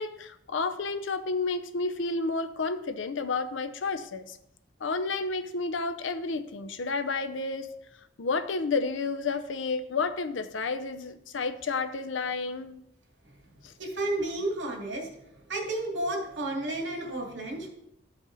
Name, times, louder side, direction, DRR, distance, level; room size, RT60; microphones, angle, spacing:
voice 1, 0.0-4.4 4.8-7.7 8.2-12.8 13.6-13.7, left 4 dB, 90° left, 10 dB, 0.6 m, -31 dB
voice 2, 13.8-15.1 15.5-17.7, right 2 dB, 85° right, 0 dB, 2.5 m, -31 dB
13.0 x 5.2 x 4.0 m, 0.81 s
head